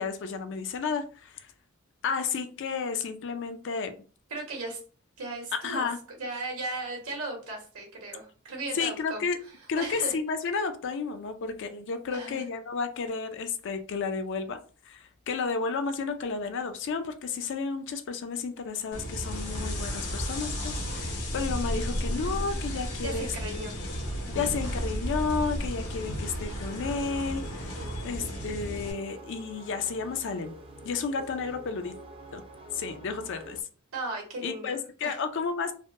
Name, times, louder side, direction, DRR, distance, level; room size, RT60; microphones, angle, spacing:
voice 1, 0.0-1.5 2.0-4.0 5.6-6.0 8.7-9.4 9.7-14.6 14.9-23.3 24.3-27.7 28.0-30.5 30.8-31.9 32.3-32.4 32.7-33.6 34.4-35.7, left 5 dB, 55° left, 0.4 m, -32 dB
voice 2, 4.3-4.8 5.2-5.9 6.2-9.2 9.8-10.2 12.1-12.4 23.0-23.8 24.2-24.4 33.9-35.2, right 2 dB, 75° right, 1.2 m, -36 dB
sound 1, 18.9-28.9, equal, 80° left, 1.0 m, -33 dB
sound 2, 26.6-33.6, right 2 dB, 25° right, 0.5 m, -47 dB
3.4 x 2.1 x 2.5 m
head